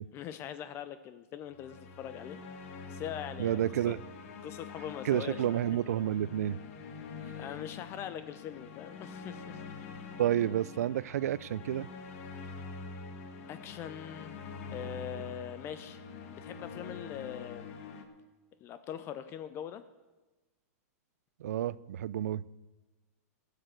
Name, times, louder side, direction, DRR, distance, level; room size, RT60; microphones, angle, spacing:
voice 1, 0.1-2.4 2.9-3.9 4.4-5.6 7.3-9.6 12.4-12.5 13.5-14.4 14.7-16.0 16.3-17.7 18.6-19.8, left 10 dB, 30° left, 12 dB, 0.5 m, -42 dB
sound 1, 1.5-18.0, left 4 dB, 55° left, 1.4 m, -45 dB
voice 2, 3.4-4.0 5.0-6.6 10.2-11.9 21.4-22.4, right 11 dB, 80° right, 21 dB, 0.4 m, -30 dB
13.5 x 6.8 x 7.7 m, 1.2 s
hypercardioid pair, 140°, 8 cm